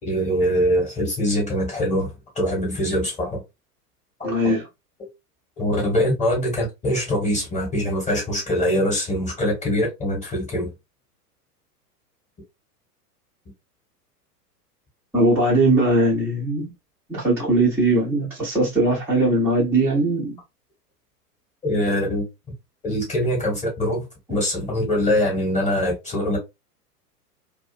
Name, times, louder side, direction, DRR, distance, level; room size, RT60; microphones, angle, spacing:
voice 1, 0.0-3.4 4.2-4.6 5.6-10.7 21.6-22.2 22.8-24.0 24.3-26.4, equal, 15° left, 1.1 m, -23 dB
voice 2, 4.2-4.7 15.1-16.7 17.1-20.4, right 2 dB, 5° right, 0.6 m, -20 dB
2.4 x 2.3 x 2.4 m
figure-of-eight pair, 105°, 48 cm